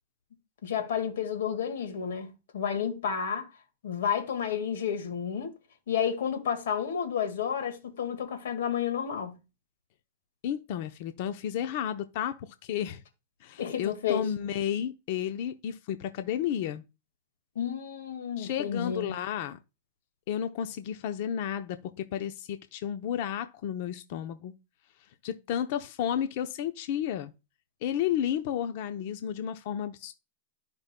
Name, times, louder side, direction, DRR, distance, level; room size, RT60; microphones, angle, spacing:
voice 1, 0.6-3.5 3.8-5.5 5.9-9.4 13.6-14.3 17.5-19.2, left 8 dB, 80° left, 1.7 m, -31 dB
voice 2, 10.4-13.0 13.4-16.8 18.4-19.6 20.3-24.5 25.2-27.3 27.8-30.1, left 9 dB, 55° left, 0.7 m, -32 dB
12.5 x 5.2 x 2.2 m
hypercardioid pair, 140°, 0 cm